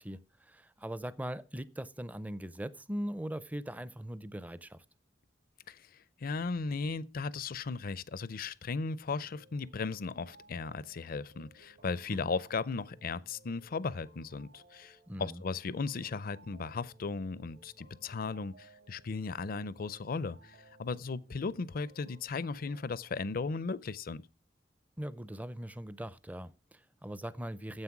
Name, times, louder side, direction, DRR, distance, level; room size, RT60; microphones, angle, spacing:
voice 1, 0.0-4.8 12.1-12.3 15.1-15.4 25.0-27.8, equal, 10° right, 0.5 m, -40 dB
voice 2, 5.7-24.2, left 4 dB, 50° left, 0.5 m, -36 dB
sound 1, 9.0-23.5, right 2 dB, 70° right, 2.4 m, -61 dB
9.7 x 7.6 x 6.0 m
head